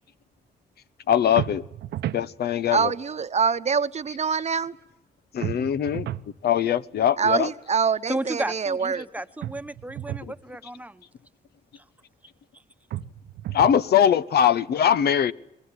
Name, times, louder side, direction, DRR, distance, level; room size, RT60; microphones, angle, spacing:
voice 1, 1.1-1.6 2.1-2.9 5.3-6.1 6.4-7.5 10.2-10.3 13.5-15.3, left 9 dB, 70° left, 0.9 m, -21 dB
sound 1, 1.4-2.3 5.4-6.3 9.4-10.3 12.9-13.8, right 12 dB, 90° right, 1.0 m, -32 dB
voice 2, 2.7-4.7 7.2-9.0, right 6 dB, 40° right, 1.0 m, -24 dB
voice 3, 8.1-11.0 11.7-11.8, right 2 dB, 10° right, 1.2 m, -33 dB
24.0 x 21.0 x 9.8 m
cardioid pair, 90°, 17 cm